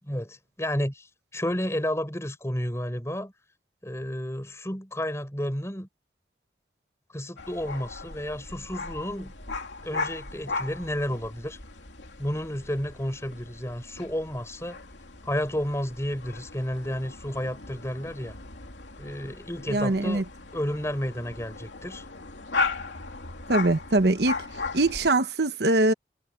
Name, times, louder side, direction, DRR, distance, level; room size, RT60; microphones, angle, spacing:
voice 1, 0.0-3.3 3.8-5.9 7.1-9.3 9.8-11.6 12.2-14.8 15.2-18.4 19.0-20.2 20.5-22.0, equal, 15° left, 5.0 m, -31 dB
sound 1, 7.4-25.1, left 3 dB, 90° left, 3.1 m, -37 dB
voice 2, 19.7-20.2 23.5-24.4 24.7-25.9, right 2 dB, 70° right, 1.1 m, -22 dB
head